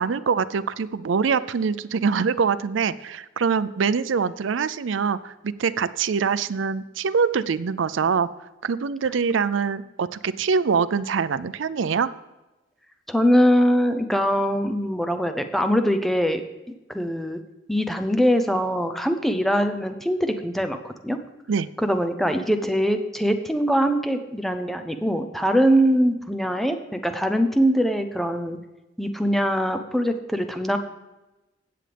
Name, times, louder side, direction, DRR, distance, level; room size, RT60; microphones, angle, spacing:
voice 1, 0.0-8.3 8.6-12.1 21.5-21.7, right 5 dB, 85° right, 16 dB, 0.4 m, -24 dB
voice 2, 13.1-16.4 16.9-17.4 17.7-21.2 21.8-28.6 29.0-30.8, equal, ahead, 7 dB, 0.6 m, -22 dB
17.0 x 7.6 x 3.4 m, 1.0 s
head